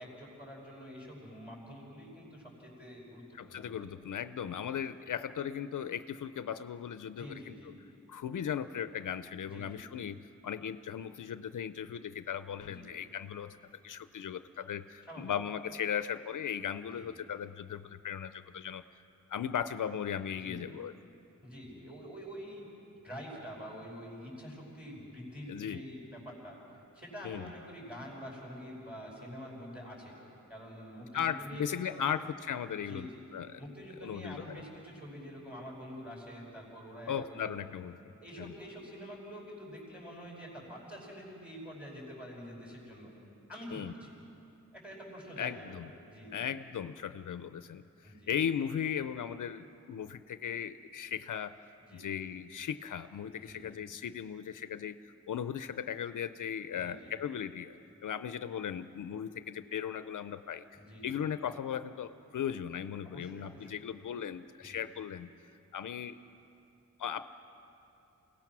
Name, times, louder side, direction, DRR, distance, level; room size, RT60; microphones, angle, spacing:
voice 1, 0.0-4.1 4.8-4.9 7.2-7.8 9.4-9.8 12.6-13.0 15.0-15.3 16.9-17.2 20.3-20.7 21.4-22.7 23.0-26.5 26.9-30.2 30.5-32.1 32.8-33.2 33.6-37.6 38.2-43.1 43.5-44.2 44.7-45.8 46.1-46.4 48.0-48.3 51.8-52.2 53.3-53.7 56.7-57.1 60.7-61.1 63.0-63.8 64.6-64.8, equal, 5° right, -3 dB, 5.6 m, -47 dB
voice 2, 3.4-7.5 8.1-13.6 13.8-18.8 19.3-20.9 25.5-25.8 27.2-27.5 31.1-33.6 34.0-34.4 37.1-38.0 38.4-38.5 43.7-43.9 45.4-45.9 46.3-51.6 51.9-55.0 55.3-57.8 58.0-60.6 61.0-65.3 65.7-66.2 67.0-67.2, left 8 dB, 75° left, 12 dB, 0.5 m, -37 dB
28.5 x 17.5 x 6.1 m, 2.8 s
wide cardioid pair, 170°, 31 cm